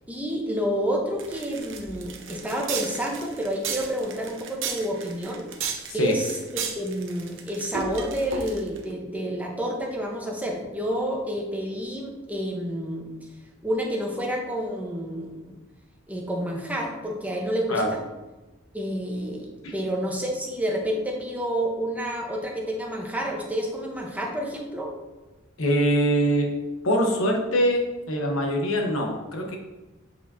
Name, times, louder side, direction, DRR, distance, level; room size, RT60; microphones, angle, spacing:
voice 1, 0.1-5.4 5.9-13.1 13.6-15.5 16.1-18.0 18.7-24.9, equal, 10° right, -1 dB, 1.0 m, -29 dB
sound 1, 1.2-8.8, right 6 dB, 65° right, 0.8 m, -34 dB
voice 2, 25.6-26.5 26.8-29.6, equal, 90° left, 1 dB, 1.1 m, -23 dB
8.1 x 4.8 x 2.8 m, 1.1 s
head